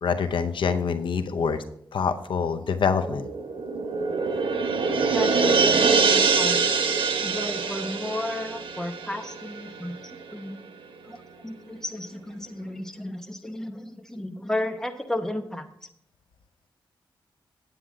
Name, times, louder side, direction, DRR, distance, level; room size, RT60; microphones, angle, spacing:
voice 1, 0.0-1.6 1.9-3.3, left 6 dB, 75° left, 9 dB, 0.6 m, -25 dB
sound 1, 3.0-10.0 10.3-10.4, right 5 dB, 80° right, 0.9 m, -24 dB
voice 2, 5.1-6.7 7.2-9.9 10.3-10.6 11.0-11.2 11.4-15.7, left 1 dB, 5° left, 5 dB, 0.9 m, -33 dB
9.4 x 8.6 x 3.6 m, 0.72 s
wide cardioid pair, 95°, 9 cm